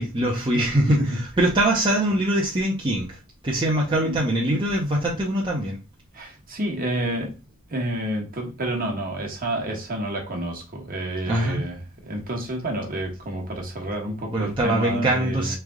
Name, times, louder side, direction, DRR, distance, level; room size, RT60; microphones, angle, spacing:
voice 1, 0.0-3.2 3.4-5.8 11.3-11.6 14.3-15.5, right 1 dB, 20° right, 0.7 m, -23 dB
voice 2, 0.9-1.2 3.9-4.2 6.1-7.3 7.7-15.5, right 1 dB, 40° right, 1.2 m, -29 dB
3.7 x 3.3 x 3.6 m
head